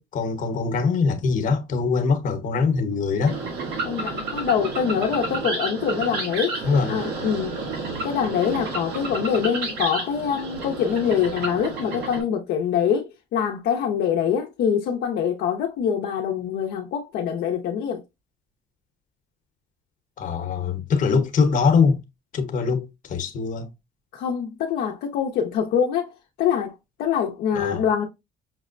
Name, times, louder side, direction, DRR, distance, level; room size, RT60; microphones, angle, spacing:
voice 1, 0.0-3.4 6.6-7.0 20.2-22.0 22.3-23.7 27.5-27.8, left 5 dB, 50° left, 0.9 m, -22 dB
sound 1, 3.3-12.2, right 3 dB, 75° right, 1.2 m, -31 dB
voice 2, 3.8-6.6 6.9-7.6 8.0-18.0 24.1-26.1 26.4-28.1, left 8 dB, 75° left, 0.6 m, -24 dB
5.8 x 2.1 x 2.4 m
cardioid pair, 110°, 17 cm